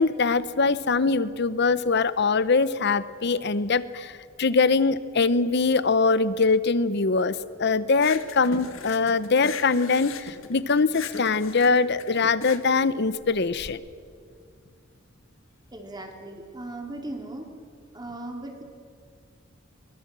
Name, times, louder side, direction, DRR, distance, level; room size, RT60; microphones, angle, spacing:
voice 1, 0.0-13.8, left 4 dB, 55° left, 16 dB, 0.8 m, -23 dB
sound 1, 7.9-13.7, left 5 dB, 80° left, 1.6 m, -39 dB
voice 2, 15.7-17.5 17.9-18.6, right 2 dB, 20° right, 3 dB, 2.9 m, -37 dB
22.5 x 20.0 x 7.6 m, 2.2 s
head